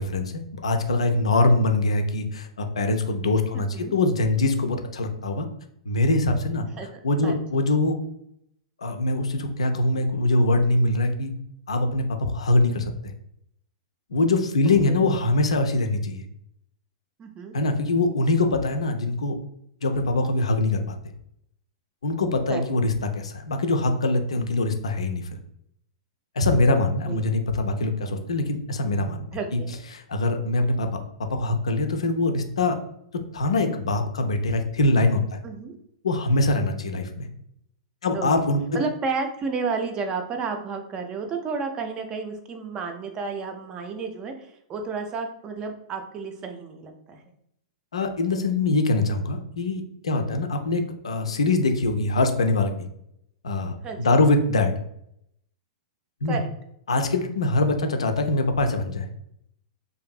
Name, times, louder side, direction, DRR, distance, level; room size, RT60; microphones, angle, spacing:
voice 1, 0.0-5.5 5.9-6.7 7.0-8.0 8.8-11.3 11.7-12.9 14.1-16.3 17.5-19.4 19.8-21.0 22.0-25.4 26.4-29.3 29.5-29.6 29.9-32.8 33.3-35.4 36.0-37.3 38.0-38.6 47.9-52.9 53.4-54.7 56.2-56.4 56.9-59.1, left 2 dB, 70° left, 6 dB, 0.4 m, -23 dB
voice 2, 3.5-4.0 6.8-7.4 14.9-15.1 17.2-17.5 22.5-22.6 26.5-26.6 27.1-27.2 29.3-29.7 35.4-35.7 38.1-38.3 38.7-47.2 50.1-50.5 53.8-54.2 56.3-56.5, right 4 dB, 25° right, 5 dB, 0.4 m, -32 dB
2.5 x 2.5 x 2.3 m, 0.74 s
figure-of-eight pair, 100°, 3 cm